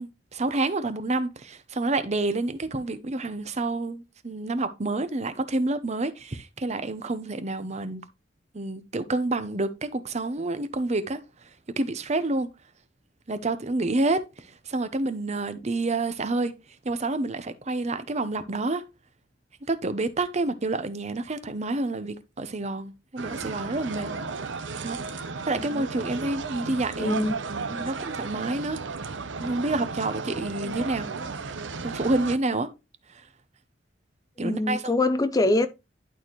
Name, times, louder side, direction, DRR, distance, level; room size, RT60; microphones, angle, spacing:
voice 1, 0.0-8.0 8.5-11.2 11.8-12.5 13.3-16.5 16.8-18.8 19.7-24.1 24.8-25.0 25.5-28.8 29.4-31.1 31.4-31.5 31.8-32.7 33.1-33.2 34.4-34.9, right 2 dB, 35° right, 0.8 m, -28 dB
sound 1, 23.2-32.4, right 4 dB, 75° right, 0.8 m, -34 dB
voice 2, 27.0-27.3 30.6-30.7 34.4-35.7, left 2 dB, 20° left, 0.4 m, -24 dB
11.5 x 4.4 x 3.1 m
head